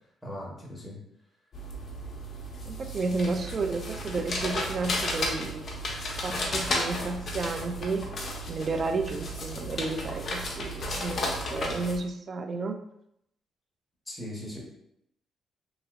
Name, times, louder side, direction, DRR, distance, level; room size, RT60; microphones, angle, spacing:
voice 1, 0.2-1.0 14.1-14.6, equal, 5° left, -4 dB, 1.0 m, -39 dB
sound 1, 1.5-12.0, left 1 dB, 45° left, 0.6 m, -33 dB
voice 2, 2.7-5.6 6.2-8.1 8.5-12.8, right 3 dB, 45° right, 6 dB, 0.3 m, -32 dB
2.8 x 2.7 x 2.4 m, 0.77 s
cardioid pair, 90°, 0 cm